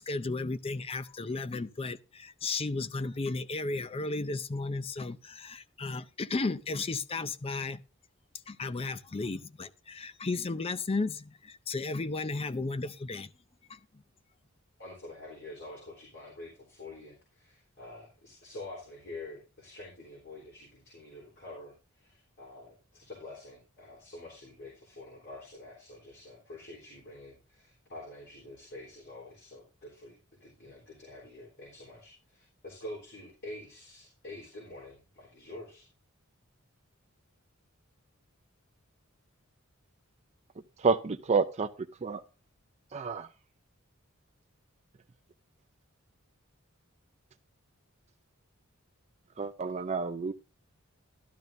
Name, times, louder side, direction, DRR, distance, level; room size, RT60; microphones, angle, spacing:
voice 1, 0.0-7.8 8.5-13.3 13.7-13.8, left 3 dB, 25° left, 0.5 m, -34 dB
voice 2, 14.8-35.9, left 2 dB, 55° left, 3.5 m, -47 dB
voice 3, 40.8-41.7 42.0-42.2 42.9-43.3 49.4-50.3, right 4 dB, 30° right, 0.5 m, -29 dB
12.5 x 12.0 x 2.6 m
head